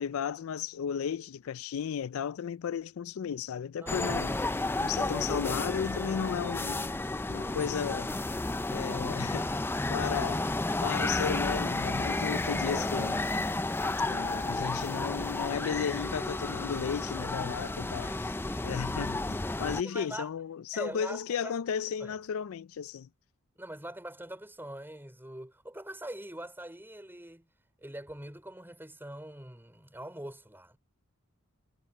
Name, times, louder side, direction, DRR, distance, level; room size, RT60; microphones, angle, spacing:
voice 1, 0.0-4.4 4.8-6.9 7.3-8.1 8.7-9.5 9.9-10.4 10.8-13.2 14.1-18.3 18.6-23.1, left 7 dB, 75° left, 0.4 m, -34 dB
voice 2, 3.8-4.2 12.7-13.2 18.0-18.2 18.4-18.8 19.8-20.3 20.7-21.6 22.0-22.1 23.6-27.5 27.8-30.8, right 1 dB, 10° right, 5.1 m, -43 dB
sound 1, 3.9-19.8, left 2 dB, 10° left, 0.4 m, -32 dB
head